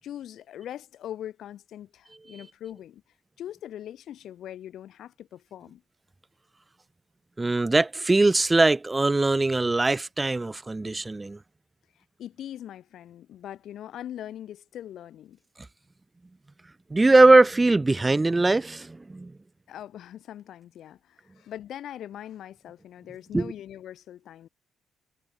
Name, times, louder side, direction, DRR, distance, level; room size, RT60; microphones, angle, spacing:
voice 1, 0.0-3.0 3.4-5.8 11.9-15.4 19.7-24.5, left 11 dB, 75° left, 1.7 m, -41 dB
voice 2, 7.4-11.4 16.9-19.3 23.3-23.5, right 2 dB, 20° right, 1.0 m, -21 dB
cardioid pair, 90°, 0 cm